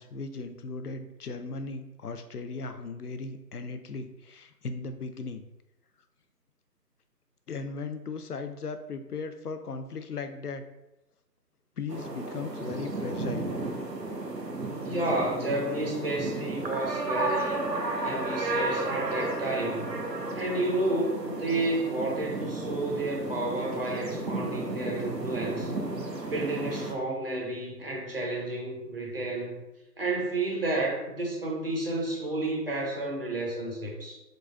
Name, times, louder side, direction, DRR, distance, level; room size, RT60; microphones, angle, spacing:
voice 1, 0.0-5.5 7.5-10.6 11.8-13.5, left 4 dB, 65° left, 8 dB, 0.6 m, -37 dB
sound 1, 11.9-26.9, right 2 dB, 80° right, 0.9 m, -33 dB
voice 2, 14.8-17.7 18.0-19.9 20.3-25.7 26.3-29.6 30.0-34.2, right 2 dB, 35° right, -2 dB, 0.9 m, -31 dB
4.1 x 3.9 x 2.3 m, 0.93 s
figure-of-eight pair, 155°, 49 cm